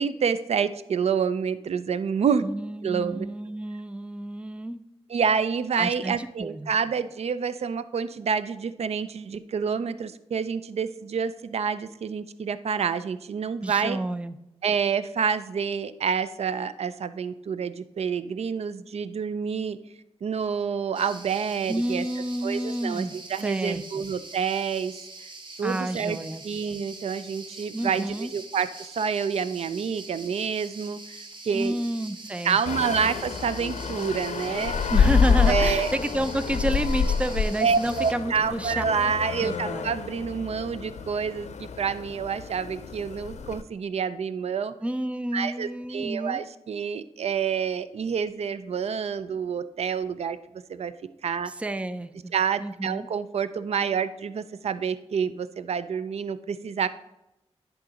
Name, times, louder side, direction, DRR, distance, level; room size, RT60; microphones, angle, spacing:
voice 1, 0.0-2.5 2.8-3.3 5.1-14.0 14.6-19.8 20.2-22.1 22.4-25.3 25.6-26.2 26.4-31.8 32.4-34.8 35.5-35.9 37.6-44.7 45.3-50.4 50.7-50.9 51.2-51.5 52.3-56.9, right 6 dB, 70° right, 13 dB, 0.4 m, -28 dB
voice 2, 2.4-4.8 5.8-6.7 13.6-14.4 21.7-23.1 23.4-24.0 25.6-26.4 27.7-28.3 31.5-32.8 34.9-38.8 39.4-39.8 44.8-46.4 51.5-52.3 52.6-53.1, right 1 dB, 10° right, 12 dB, 0.4 m, -30 dB
sound 1, 20.9-38.1, right 3 dB, 45° right, 1.0 m, -44 dB
sound 2, 32.7-43.6, left 6 dB, 85° left, 0.5 m, -27 dB
10.5 x 3.7 x 5.1 m, 0.87 s
wide cardioid pair, 95°, 11 cm